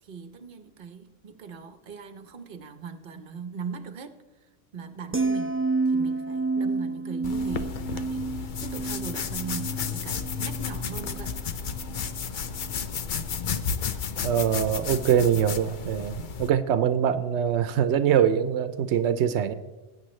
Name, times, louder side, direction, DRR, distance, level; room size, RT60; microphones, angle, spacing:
voice 1, 0.0-4.2 4.7-11.3, right 6 dB, 55° right, 9 dB, 1.0 m, -40 dB
sound 1, 5.1-11.4 11.7-12.1, right 3 dB, 15° right, 0.4 m, -30 dB
sound 2, 7.2-16.5, left 6 dB, 55° left, 0.7 m, -32 dB
voice 2, 14.2-19.5, right 9 dB, 85° right, 12 dB, 0.9 m, -23 dB
19.5 x 9.1 x 3.2 m, 1.1 s
omnidirectional pair, 1.1 m